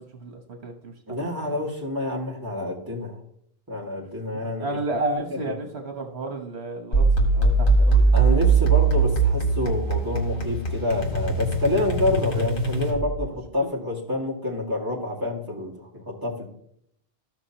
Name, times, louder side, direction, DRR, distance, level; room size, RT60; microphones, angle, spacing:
voice 1, 0.0-1.2 4.6-8.1 12.1-12.5 13.6-13.7, right 2 dB, 80° right, 4 dB, 1.3 m, -32 dB
voice 2, 1.1-3.2 3.7-4.8 5.3-5.5 8.1-16.5, left 2 dB, 20° right, -4 dB, 2.0 m, -28 dB
sound 1, 6.9-13.3, right 3 dB, 55° left, 1.9 m, -21 dB
14.0 x 6.0 x 2.9 m, 0.73 s
omnidirectional pair, 1.1 m